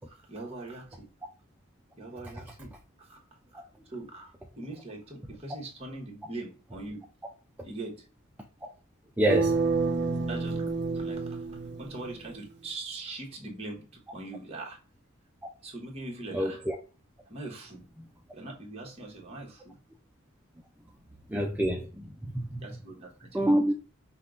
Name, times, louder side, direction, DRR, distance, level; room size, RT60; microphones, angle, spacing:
voice 1, 0.1-1.1 1.9-2.7 3.0-3.2 3.5-3.6 3.9-7.0 7.6-8.0 10.2-11.4 11.8-13.8 14.1-14.8 15.6-16.6 17.3-17.8 18.3-19.8 22.6-23.5, right 2 dB, 30° right, 1.3 m, -41 dB
voice 2, 9.2-9.6 16.3-16.8 21.3-22.6 23.3-23.7, right 1 dB, 10° right, 0.4 m, -27 dB
sound 1, 9.3-12.3, right 4 dB, 50° right, 0.7 m, -29 dB
5.7 x 2.3 x 3.7 m
head